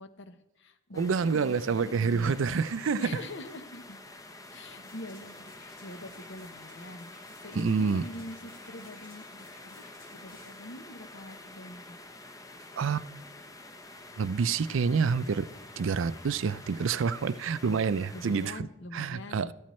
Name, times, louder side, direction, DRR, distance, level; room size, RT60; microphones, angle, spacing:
voice 1, 0.0-2.6 3.0-4.0 4.5-7.1 7.4-9.2 9.8-12.0 18.1-19.5, left 1 dB, 55° left, 0.9 m, -44 dB
sound 1, 0.9-18.5, left 2 dB, 15° left, 0.6 m, -48 dB
voice 2, 1.0-3.1 7.6-8.0 12.8-13.1 14.2-15.5 15.8-18.6 18.9-19.5, right 5 dB, 60° right, 0.4 m, -27 dB
sound 2, 4.4-10.7 11.2-11.3, left 1 dB, 80° left, 3.8 m, -56 dB
14.0 x 13.0 x 3.1 m
head